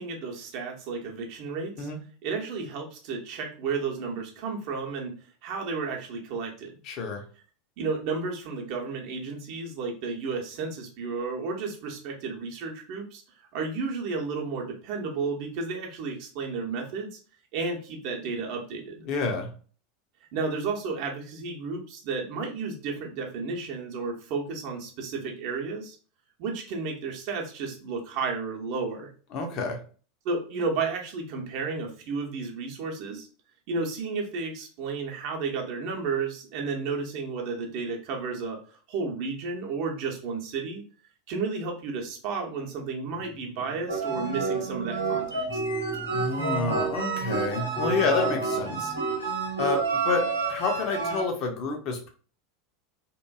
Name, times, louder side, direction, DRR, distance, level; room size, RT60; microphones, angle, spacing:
voice 1, 0.0-1.9 2.2-5.1 5.4-6.7 7.8-13.2 13.5-17.2 17.5-19.0 20.3-26.0 26.4-29.1 30.2-33.3 33.7-38.6 38.9-40.8 41.3-45.6, right 4 dB, 50° right, 0 dB, 0.7 m, -32 dB
voice 2, 6.8-7.2 19.1-19.5 29.3-29.8 46.1-48.9 49.6-52.1, left 4 dB, 45° left, 3 dB, 0.6 m, -29 dB
sound 1, 42.6-42.9 43.1-44.5 44.8-49.3, right 4 dB, 15° right, 0.4 m, -40 dB
sound 2, 43.9-51.2, right 4 dB, 85° right, 0.6 m, -29 dB
2.9 x 2.5 x 2.3 m, 0.40 s
figure-of-eight pair, 85°, 0 cm